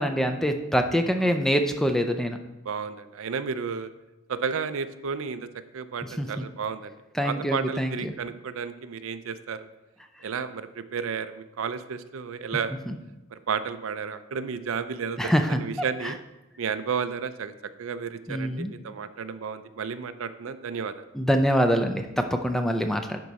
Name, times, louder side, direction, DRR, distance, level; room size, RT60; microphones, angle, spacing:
voice 1, 0.0-2.4 6.0-6.5 7.1-8.1 12.9-13.0 15.2-15.6 16.0-16.1 18.3-18.7 21.1-23.2, equal, ahead, 5 dB, 0.4 m, -25 dB
voice 2, 2.7-3.9 4.3-5.5 5.7-6.9 7.2-9.7 10.2-12.7 13.3-16.2 16.6-17.5 17.8-21.0, right 6 dB, 70° right, 12 dB, 0.4 m, -32 dB
11.0 x 4.6 x 4.1 m, 1.0 s
head